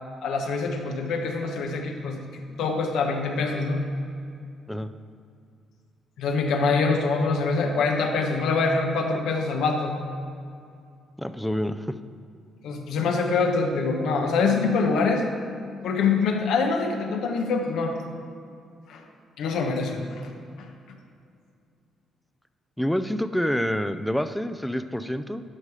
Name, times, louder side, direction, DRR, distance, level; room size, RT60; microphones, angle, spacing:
voice 1, 0.2-3.8 6.2-10.0 12.6-15.2 15.8-18.0 18.9-19.0 19.4-20.3, left 4 dB, 80° left, 3 dB, 1.1 m, -25 dB
voice 2, 11.2-11.8 22.8-25.4, equal, 5° left, 10 dB, 0.4 m, -27 dB
12.0 x 4.8 x 4.9 m, 2.4 s
cardioid pair, 90°, 0 cm